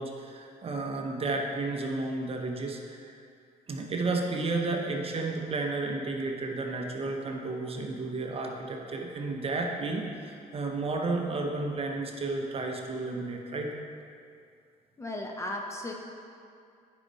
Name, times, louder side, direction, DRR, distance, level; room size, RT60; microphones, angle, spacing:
voice 1, 0.0-3.2 3.7-13.7, right 3 dB, 35° right, 1 dB, 0.9 m, -32 dB
voice 2, 15.0-15.9, left 1 dB, 15° left, 0 dB, 0.9 m, -35 dB
9.7 x 5.4 x 4.1 m, 2.4 s
cardioid pair, 110°, 17 cm